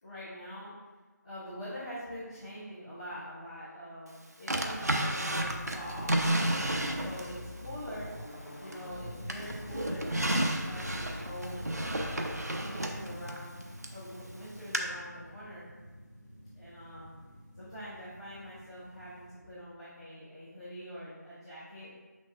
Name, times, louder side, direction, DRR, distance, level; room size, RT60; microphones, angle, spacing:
voice 1, 0.0-0.7 1.2-8.1 8.6-12.2 12.6-13.5 13.9-15.7 16.6-17.1 17.5-21.9, equal, 20° left, -16 dB, 1.9 m, -44 dB
Drawer open or close, 4.5-7.4 7.9-8.9 9.3-14.0 14.7-14.8, right 1 dB, 60° right, 0.8 m, -32 dB
sound 1, 5.3-12.4, left 1 dB, 40° left, 0.5 m, -44 dB
sound 2, 9.0-19.3, equal, 30° right, 1.5 m, -48 dB
6.6 x 6.2 x 2.5 m, 1.3 s
figure-of-eight pair, 170°, 10 cm